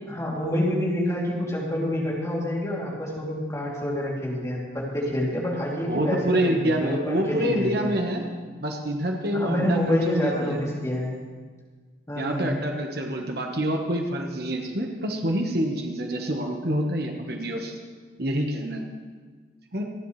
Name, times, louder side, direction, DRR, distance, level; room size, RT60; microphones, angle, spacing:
voice 1, 0.0-7.9 9.3-11.2 12.1-12.5, left 1 dB, 15° left, -4 dB, 2.9 m, -27 dB
voice 2, 5.8-8.2 8.6-10.6 12.1-17.7 18.2-18.9 19.7-19.8, right 1 dB, 55° right, 2 dB, 1.3 m, -27 dB
27.0 x 10.5 x 3.3 m, 1.5 s
head